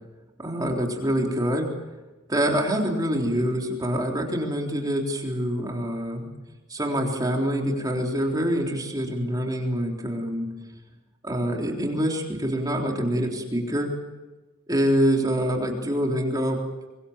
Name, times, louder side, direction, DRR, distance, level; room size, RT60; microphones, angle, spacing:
voice 1, 0.4-1.7 2.3-6.3 6.7-10.5 11.2-13.9 14.7-16.6, equal, 20° right, 1 dB, 3.7 m, -25 dB
25.0 x 23.0 x 7.3 m, 1.2 s
head